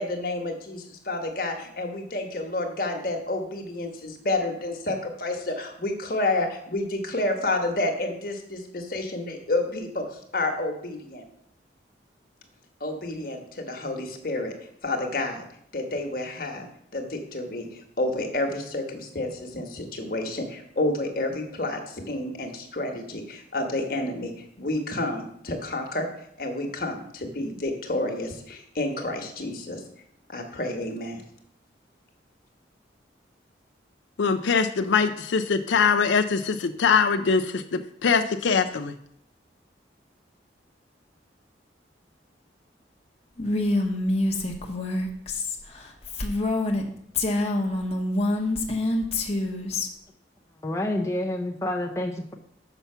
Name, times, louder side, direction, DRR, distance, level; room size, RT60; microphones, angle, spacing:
voice 1, 0.0-11.2 12.8-14.5 14.8-15.4 15.7-26.1 26.4-29.8 30.3-31.2, left 2 dB, 50° left, 1.3 m, -30 dB
voice 2, 34.2-38.9, left 5 dB, 85° left, 0.5 m, -23 dB
Female speech woman speaking, 43.4-46.8 47.1-49.9, left 2 dB, 35° left, 0.9 m, -26 dB
voice 3, 50.6-52.3, left 1 dB, 15° left, 0.5 m, -28 dB
7.0 x 5.8 x 5.6 m
head